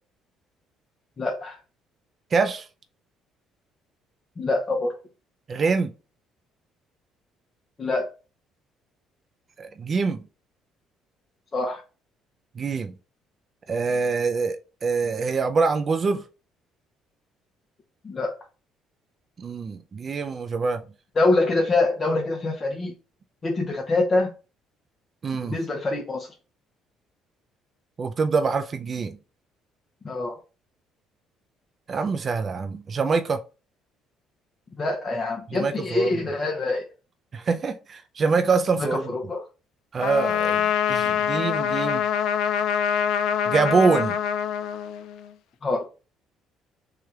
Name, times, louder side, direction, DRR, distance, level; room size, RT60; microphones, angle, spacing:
voice 1, 1.2-1.6 4.4-5.0 7.8-8.1 11.5-11.8 18.0-18.3 21.2-22.9 23.4-24.3 25.4-26.3 30.0-30.4 34.8-36.8 38.8-39.4 45.6-45.9, left 2 dB, 35° left, 0.7 m, -25 dB
voice 2, 2.3-2.7 5.5-5.9 9.6-10.2 12.6-12.9 13.7-16.2 19.4-20.8 25.2-25.6 28.0-29.2 31.9-33.4 35.5-36.2 37.3-39.1 39.9-42.0 43.5-44.2, right 4 dB, 40° right, 0.4 m, -25 dB
Trumpet, 40.0-45.3, left 8 dB, 75° left, 0.3 m, -25 dB
3.3 x 2.4 x 4.2 m
cardioid pair, 90°, 0 cm